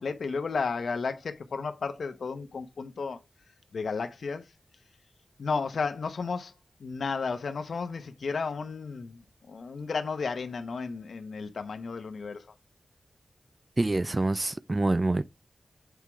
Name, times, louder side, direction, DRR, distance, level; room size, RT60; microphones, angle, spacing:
voice 1, 0.0-3.2 3.7-4.5 5.4-6.5 6.8-12.5, left 4 dB, 75° left, 0.9 m, -33 dB
voice 2, 13.8-15.3, right 2 dB, 30° right, 0.3 m, -26 dB
8.2 x 4.6 x 3.5 m
wide cardioid pair, 85°, 0 cm